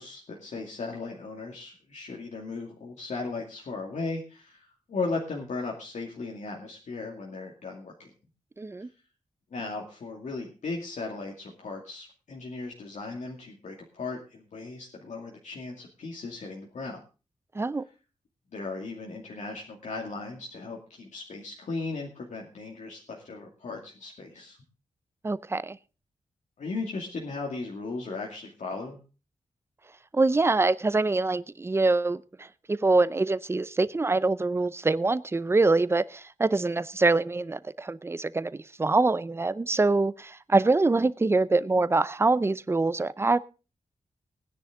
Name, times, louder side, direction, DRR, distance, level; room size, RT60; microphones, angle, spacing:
voice 1, 0.0-8.1 9.5-17.0 18.5-24.6 26.6-29.0, left 3 dB, 70° left, 2.5 m, -37 dB
voice 2, 8.6-8.9 17.5-17.8 25.2-25.8 30.1-43.4, right 3 dB, 20° right, 0.5 m, -24 dB
19.0 x 10.0 x 3.8 m
wide cardioid pair, 170°, 13 cm